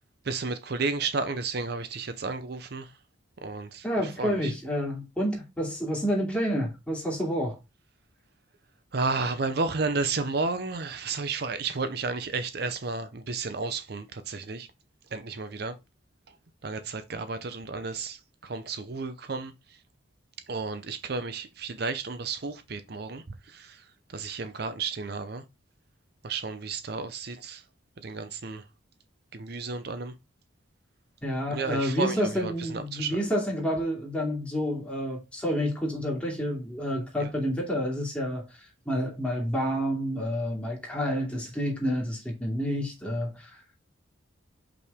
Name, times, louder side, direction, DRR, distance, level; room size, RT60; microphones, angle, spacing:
voice 1, 0.2-2.9 3.4-4.5 8.9-14.7 15.1-15.8 16.6-19.8 20.5-25.4 26.2-27.6 28.0-28.6 29.3-30.1 31.5-33.2 37.2-37.3, right 4 dB, 50° right, 0.6 m, -32 dB
voice 2, 3.8-7.6 31.2-43.8, equal, 5° left, 2.6 m, -29 dB
6.3 x 5.6 x 3.5 m
head